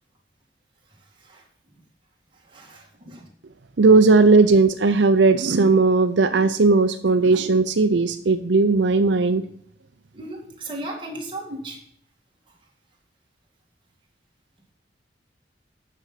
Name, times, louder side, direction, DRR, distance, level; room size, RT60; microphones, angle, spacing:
voice 1, 2.5-3.2 10.1-11.8, right 1 dB, 25° right, -1 dB, 2.1 m, -35 dB
voice 2, 3.8-9.4, right 3 dB, 75° right, 8 dB, 0.6 m, -17 dB
8.9 x 6.8 x 5.8 m, 0.66 s
head